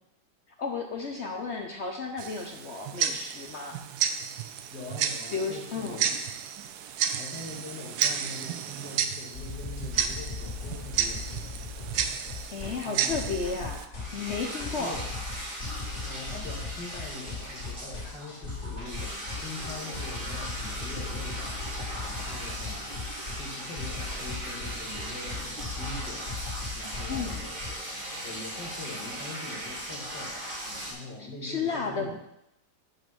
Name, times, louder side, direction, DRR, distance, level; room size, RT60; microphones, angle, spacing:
voice 1, 0.6-3.8 5.3-6.0 12.5-15.0 27.1-27.5 31.4-32.1, left 5 dB, 55° left, 2 dB, 0.7 m, -33 dB
Tick-tock, 2.2-13.9, right 8 dB, 70° right, 1.0 m, -32 dB
voice 2, 4.7-6.1 7.1-11.6 12.6-13.3 14.8-15.1 16.1-22.9 23.3-27.4 28.2-32.1, left 2 dB, 75° left, -1 dB, 2.2 m, -43 dB
sound 1, 9.3-27.7, left 4 dB, 40° left, 3.3 m, -38 dB
sound 2, 13.9-30.9, right 1 dB, 30° right, 1.7 m, -38 dB
9.0 x 3.2 x 6.1 m, 0.82 s
omnidirectional pair, 1.9 m